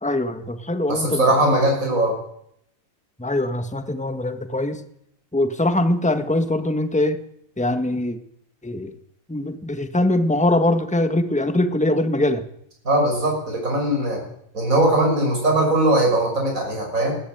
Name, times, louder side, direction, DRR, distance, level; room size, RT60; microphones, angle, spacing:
voice 1, 0.0-1.2 3.2-4.8 5.3-7.2 7.6-8.2 8.6-8.9 9.3-12.4, left 1 dB, 5° left, 9 dB, 1.6 m, -22 dB
voice 2, 0.9-2.1 12.8-14.2 14.5-17.1, right 1 dB, 70° right, 0 dB, 6.8 m, -20 dB
20.0 x 18.0 x 9.3 m, 0.73 s
omnidirectional pair, 1.5 m